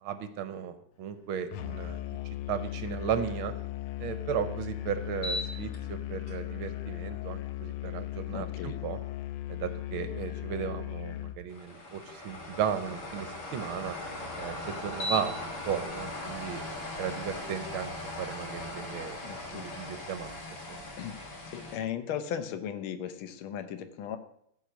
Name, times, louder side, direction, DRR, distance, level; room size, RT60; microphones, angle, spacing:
voice 1, 0.0-2.0 2.5-3.5 4.0-9.0 9.5-14.0 14.4-16.6 17.0-17.9 18.2-19.2 19.5-20.3, right 8 dB, 75° right, 10 dB, 1.6 m, -35 dB
Musical instrument, 1.5-11.4, left 13 dB, 90° left, 1.6 m, -37 dB
sound 1, 5.2-5.8 6.3-6.4 11.5-21.8, left 1 dB, 50° left, 2.5 m, -38 dB
voice 2, 8.3-8.8 19.2-19.7 21.0-21.1 21.5-24.2, left 9 dB, 70° left, 9 dB, 1.6 m, -36 dB
14.5 x 5.0 x 6.2 m, 0.73 s
omnidirectional pair, 2.4 m